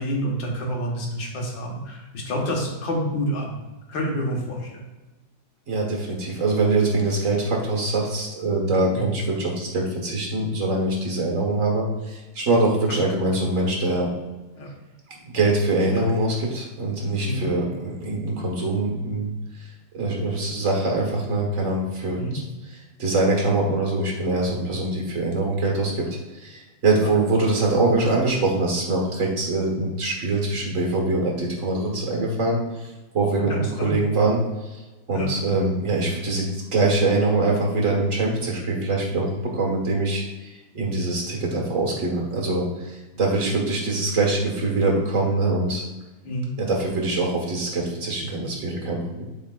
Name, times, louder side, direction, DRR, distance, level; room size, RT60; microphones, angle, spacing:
voice 1, 0.0-3.5 3.9-4.9 8.9-9.1 14.6-14.7 15.9-16.0 17.2-17.5 22.1-22.4 27.0-27.1 33.5-34.0 35.1-35.3 46.2-46.5, equal, 85° left, -1 dB, 2.2 m, -28 dB
voice 2, 5.7-14.1 15.1-19.3 19.6-19.7 19.9-22.2 23.0-26.1 26.3-32.9 33.1-34.8 35.1-45.9 46.6-49.2, right 2 dB, 45° right, -1 dB, 1.8 m, -23 dB
11.5 x 4.8 x 2.4 m, 1.1 s
omnidirectional pair, 2.0 m